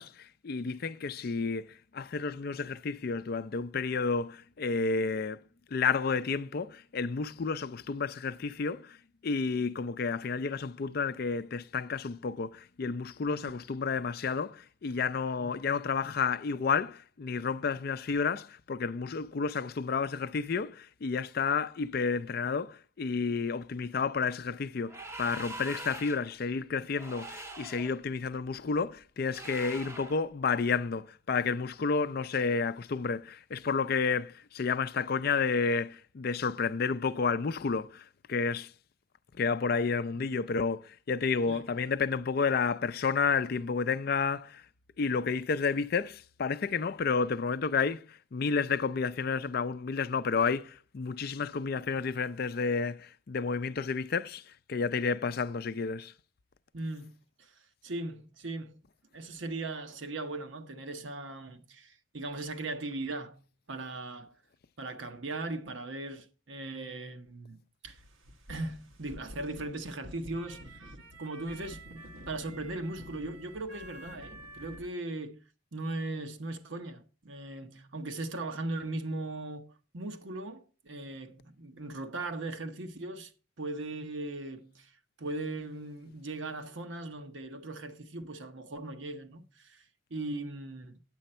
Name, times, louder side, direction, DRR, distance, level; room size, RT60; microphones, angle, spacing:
voice 1, 0.0-5.4 5.7-9.0 9.2-38.7 39.4-44.6 45.0-54.4 54.7-56.1, left 5 dB, 50° left, 0.4 m, -31 dB
sound 1, 24.9-26.3 26.9-28.0 29.3-30.2, right 2 dB, 15° right, 0.6 m, -43 dB
voice 2, 56.7-57.1 57.4-57.5 57.8-58.8 59.1-63.4 63.7-64.3 64.8-68.0 68.5-70.9 71.2-75.4 75.7-83.3 83.6-84.9 85.2-89.8 90.1-91.0, right 2 dB, 70° right, 0.9 m, -39 dB
sound 2, 67.8-74.9, equal, 85° right, 1.4 m, -49 dB
9.2 x 7.7 x 4.3 m
head